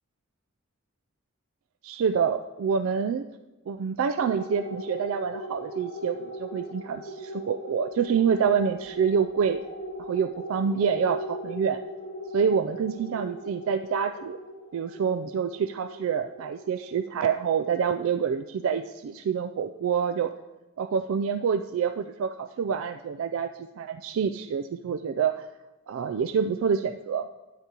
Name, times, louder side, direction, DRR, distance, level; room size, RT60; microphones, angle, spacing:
voice 1, 1.8-3.3 3.7-9.6 10.0-11.8 12.3-14.4 14.7-20.3 20.8-23.5 23.8-25.4 25.9-27.3, right 6 dB, 80° right, 9 dB, 0.3 m, -27 dB
sound 1, 4.2-18.9, equal, 50° left, 4.0 m, -40 dB
12.5 x 9.7 x 2.9 m, 1.1 s
head